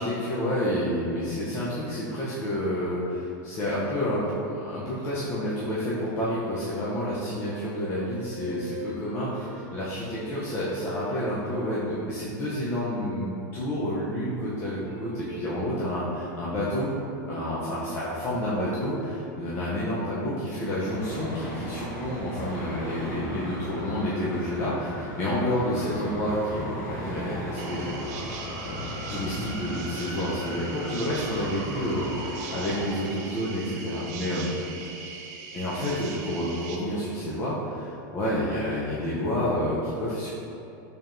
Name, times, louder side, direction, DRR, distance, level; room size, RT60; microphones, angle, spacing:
voice 1, 0.0-16.9 17.3-28.0 28.6-34.5 35.5-40.3, left 1 dB, 25° left, -8 dB, 0.5 m, -29 dB
sound 1, 7.8-12.0 12.6-13.2 14.8-15.5 16.0-20.0, right 2 dB, 20° right, 0.7 m, -42 dB
Traffic noise roadway noise, 20.8-32.9, equal, 65° left, 1.1 m, -36 dB
sound 2, 27.6-36.8, right 5 dB, 55° right, 0.5 m, -40 dB
4.5 x 3.3 x 2.5 m, 2.8 s
supercardioid pair, 160°, 10 cm